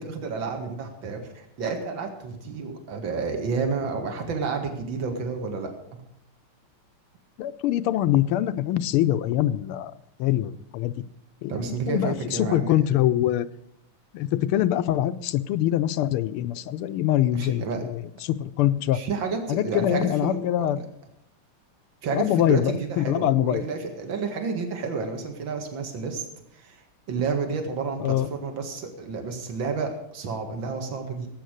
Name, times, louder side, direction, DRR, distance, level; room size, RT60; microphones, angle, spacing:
voice 1, 0.0-6.0 11.5-12.7 17.3-17.8 18.9-20.9 22.0-26.3 26.5-31.3, right 5 dB, 60° right, 4 dB, 2.5 m, -30 dB
voice 2, 7.4-9.9 10.2-10.9 11.4-13.5 14.1-19.0 19.5-20.8 22.1-23.6 28.0-28.3, left 12 dB, 80° left, 13 dB, 1.6 m, -24 dB
17.0 x 8.6 x 6.5 m, 0.77 s
omnidirectional pair, 2.4 m